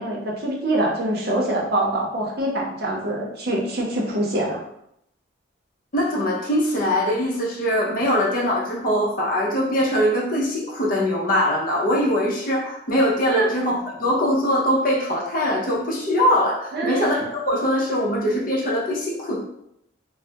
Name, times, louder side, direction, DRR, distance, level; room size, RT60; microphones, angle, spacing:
voice 1, 0.0-4.6 13.3-13.5 16.7-17.1, right 1 dB, 55° right, -2 dB, 0.7 m, -24 dB
voice 2, 5.9-19.4, equal, 45° left, -3 dB, 0.7 m, -22 dB
3.2 x 2.1 x 2.8 m, 0.76 s
head